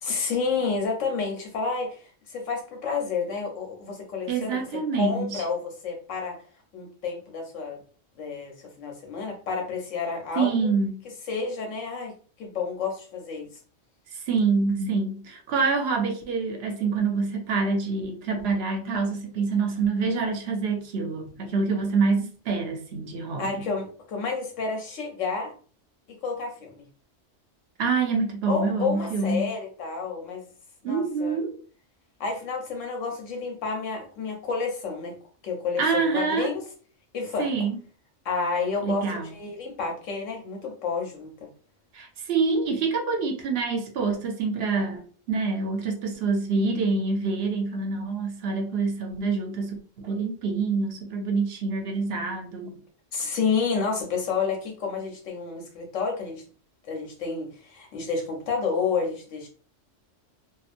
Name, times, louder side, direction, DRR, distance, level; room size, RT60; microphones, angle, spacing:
voice 1, 0.0-6.4 6.7-7.8 8.2-10.7 11.3-13.5 23.4-25.5 26.2-26.8 28.5-30.5 30.8-31.4 32.2-35.1 35.4-36.6 37.1-37.5 38.2-41.5 53.1-56.4 56.9-59.5, left 5 dB, 85° left, 1.2 m, -30 dB
voice 2, 4.3-5.4 10.4-10.9 14.1-23.7 27.8-29.5 30.8-31.6 35.8-36.5 37.4-37.8 38.8-39.3 41.9-52.8, right 4 dB, 65° right, 0.8 m, -26 dB
2.8 x 2.3 x 2.5 m
omnidirectional pair, 1.3 m